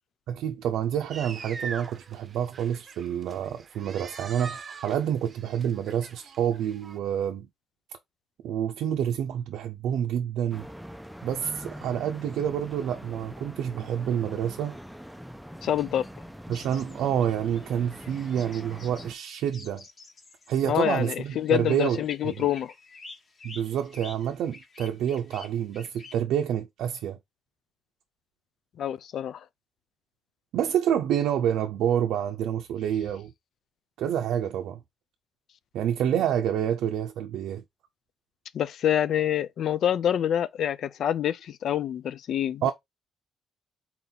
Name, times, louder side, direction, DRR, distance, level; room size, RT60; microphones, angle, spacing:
voice 1, 0.3-7.5 8.4-10.7 11.2-14.8 16.5-19.8 20.5-22.0 22.2-22.5 23.4-27.2 30.5-33.3 34.0-34.8 35.7-37.6 42.6-42.7, right 9 dB, 85° right, 0.5 m, -28 dB
sound 1, 1.1-7.0, right 5 dB, 40° right, 0.7 m, -42 dB
sound 2, 10.5-19.1, equal, ahead, 0.4 m, -43 dB
voice 2, 15.6-16.1 20.7-22.7 28.8-29.4 38.5-42.7, left 10 dB, 70° left, 0.3 m, -26 dB
sound 3, 16.5-26.2, left 3 dB, 45° left, 1.3 m, -50 dB
4.3 x 2.8 x 3.8 m
cardioid pair, 90°, 0 cm